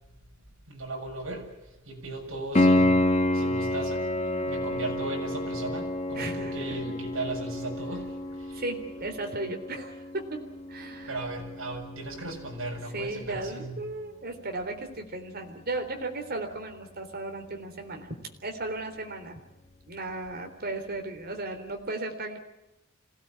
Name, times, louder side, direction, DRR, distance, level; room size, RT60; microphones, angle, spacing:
voice 1, 0.7-3.1 3.3-4.0 4.5-8.6 11.1-13.8, right 2 dB, 70° right, 1 dB, 7.0 m, -37 dB
Piano, 2.5-13.2 16.5-16.6, left 1 dB, 30° left, 1.5 m, -29 dB
voice 2, 4.0-4.6 6.1-6.5 8.5-10.4 10.7-11.2 12.9-18.1 18.4-19.4 19.9-22.4, right 2 dB, 50° right, 4 dB, 3.8 m, -35 dB
26.0 x 17.5 x 9.0 m, 0.95 s
head